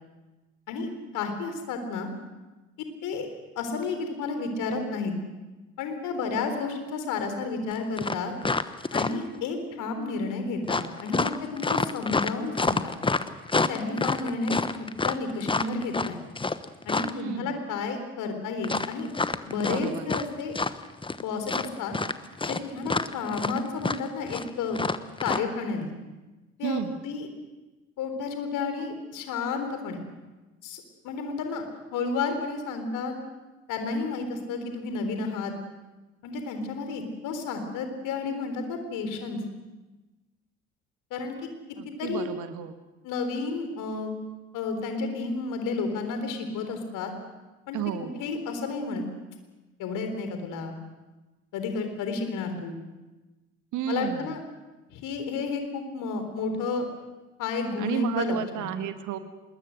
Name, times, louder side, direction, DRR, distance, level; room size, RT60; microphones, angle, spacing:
voice 1, 1.1-2.1 3.0-3.3 3.6-5.1 5.8-8.3 8.9-12.9 13.5-16.2 16.9-19.1 19.5-20.6 21.2-21.9 22.4-24.8 25.2-25.9 26.6-27.3 28.0-30.0 30.6-31.6 31.9-33.1 33.7-35.5 36.2-39.4 41.1-41.3 42.0-42.3 43.0-44.1 44.5-47.1 47.7-49.0 49.8-50.8 51.5-52.8 53.9-54.4 54.9-56.9 57.4-58.7, left 4 dB, 60° left, 6 dB, 3.9 m, -31 dB
sound 1, 7.7-7.8 8.0-9.4 10.7-17.2 18.6-20.3 20.5-21.2 21.5-25.4, left 3 dB, 15° left, 1.1 m, -28 dB
voice 2, 17.1-17.5 19.6-20.1 26.6-27.0 41.8-42.8 47.7-48.2 53.7-54.3 57.8-59.2, right 9 dB, 60° right, 9 dB, 1.8 m, -32 dB
25.5 x 21.0 x 6.5 m, 1.1 s
figure-of-eight pair, 50°, 35 cm